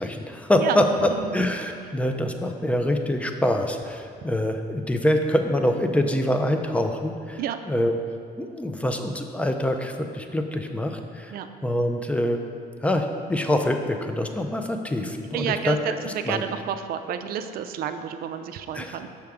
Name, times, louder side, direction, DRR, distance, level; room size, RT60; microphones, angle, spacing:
voice 1, 0.0-7.9 8.4-11.4 11.6-12.4 12.8-16.4 18.7-19.1, left 1 dB, 10° left, 5 dB, 0.5 m, -25 dB
voice 2, 15.3-15.8 16.0-19.1, right 9 dB, 60° right, 8 dB, 0.4 m, -30 dB
6.4 x 5.7 x 3.5 m, 2.2 s
cardioid pair, 110°, 17 cm